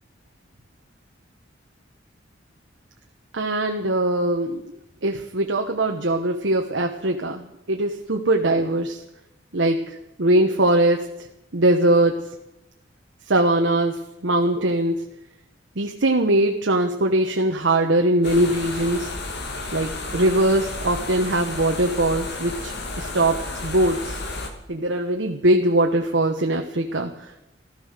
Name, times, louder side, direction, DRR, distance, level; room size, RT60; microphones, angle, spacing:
voice 1, 3.3-9.0 9.5-11.1 11.5-12.2 13.3-15.0 15.8-19.1 19.7-24.2 24.7-27.5, right 1 dB, 70° right, 3 dB, 1.2 m, -21 dB
sound 1, 18.2-24.5, left 2 dB, 60° left, 2.4 m, -32 dB
15.0 x 13.5 x 6.7 m, 0.87 s
head